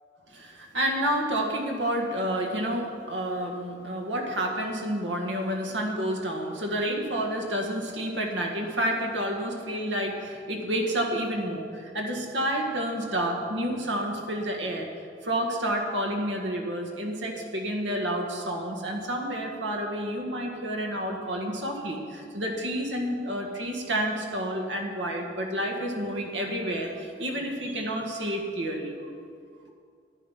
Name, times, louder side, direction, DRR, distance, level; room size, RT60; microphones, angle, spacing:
voice 1, 0.3-14.9 15.2-29.1, right 1 dB, 90° right, 1 dB, 1.8 m, -29 dB
11.0 x 9.7 x 5.7 m, 2.3 s
head